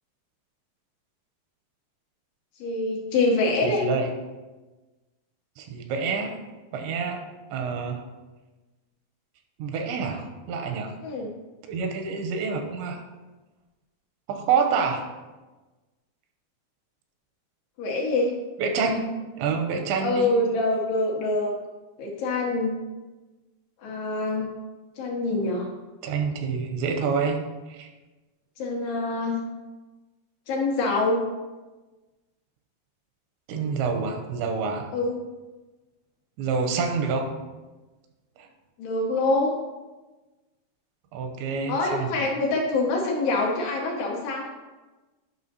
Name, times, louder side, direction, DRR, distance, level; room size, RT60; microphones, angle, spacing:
voice 1, 2.6-3.8 11.0-11.3 17.8-18.3 20.0-21.5 22.0-22.8 23.8-24.5 25.0-25.7 28.6-29.4 30.5-31.2 34.9-35.2 38.8-39.6 41.7-44.5, left 2 dB, 75° left, -2 dB, 2.6 m, -25 dB
voice 2, 3.6-4.1 5.6-6.4 6.7-7.2 7.5-8.0 9.6-10.9 11.7-13.0 14.3-15.0 18.6-19.1 19.4-20.3 26.0-27.4 27.7-27.9 33.5-34.9 36.4-37.3 38.4-38.5 41.1-42.3, right 5 dB, 85° right, 4 dB, 2.8 m, -27 dB
11.0 x 5.5 x 2.7 m, 1.2 s
omnidirectional pair, 5.3 m